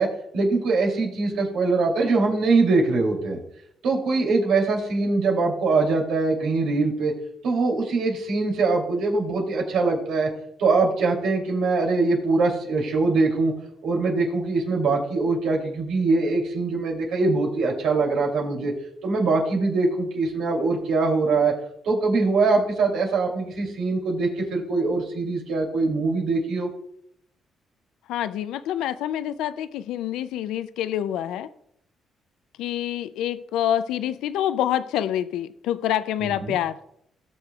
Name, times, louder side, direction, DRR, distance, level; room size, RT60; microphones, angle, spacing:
voice 1, 0.0-3.4 3.8-7.1 7.4-10.3 10.6-13.5 13.8-18.7 19.0-21.5 21.8-26.7 36.2-36.6, right 3 dB, 85° right, -1 dB, 2.9 m, -23 dB
voice 2, 28.1-31.5 32.6-36.8, left 11 dB, 90° left, 13 dB, 0.4 m, -26 dB
18.0 x 6.5 x 2.4 m, 0.73 s
cardioid pair, 90°, 0 cm